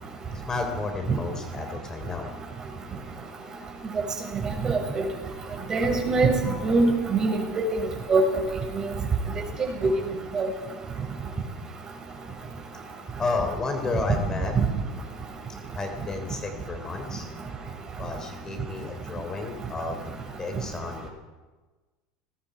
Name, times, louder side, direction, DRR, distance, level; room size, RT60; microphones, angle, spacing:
voice 1, 0.5-2.3 13.2-14.6 15.7-17.3 18.0-20.1 20.4-21.1, left 3 dB, 20° left, 4 dB, 3.5 m, -32 dB
voice 2, 4.6-5.0 5.7-6.3 6.6-7.4 8.1-8.2 9.6-9.9 10.3-10.5 14.6-14.7, right 4 dB, 25° right, 2 dB, 6.6 m, -22 dB
29.0 x 20.5 x 5.1 m, 1.3 s
supercardioid pair, 125°, 3 cm